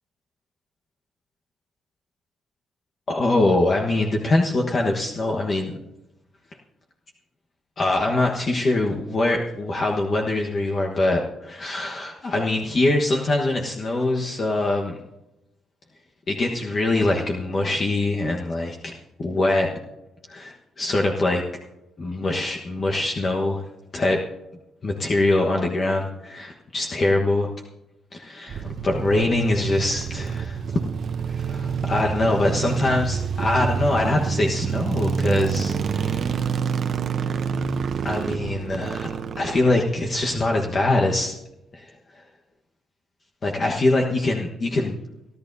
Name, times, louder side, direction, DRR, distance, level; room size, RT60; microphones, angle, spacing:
voice 1, 3.1-5.7 7.8-15.0 16.3-19.7 20.3-21.4 22.0-23.6 23.9-24.2 24.8-27.5 28.1-30.6 31.3-36.5 38.0-39.1 39.4-41.3 41.8-41.9 43.4-45.0, left 2 dB, 40° left, 0 dB, 1.3 m, -23 dB
sound 1, 28.5-40.7, right 6 dB, 55° right, 0.8 m, -27 dB
sound 2, 29.3-32.2, right 4 dB, 35° right, 1.4 m, -45 dB
29.0 x 11.0 x 2.7 m, 0.92 s
cardioid pair, 90°, 0 cm